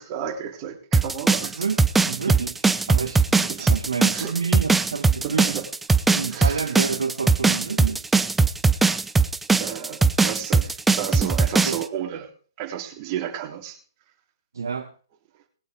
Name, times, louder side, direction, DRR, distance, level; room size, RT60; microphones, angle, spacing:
voice 1, 0.0-1.6 2.3-2.4 3.5-3.7 4.1-4.3 5.2-5.7 6.1-6.7 9.6-12.3 12.6-13.8, right 9 dB, 35° right, 3.4 m, -32 dB
sound 1, 0.9-11.8, right 4 dB, 5° right, 0.7 m, -20 dB
voice 2, 2.1-5.6 6.1-8.1 11.6-11.8 14.5-14.9, right 5 dB, 75° right, 1.3 m, -29 dB
20.0 x 8.3 x 5.0 m
figure-of-eight pair, 125°, 2 cm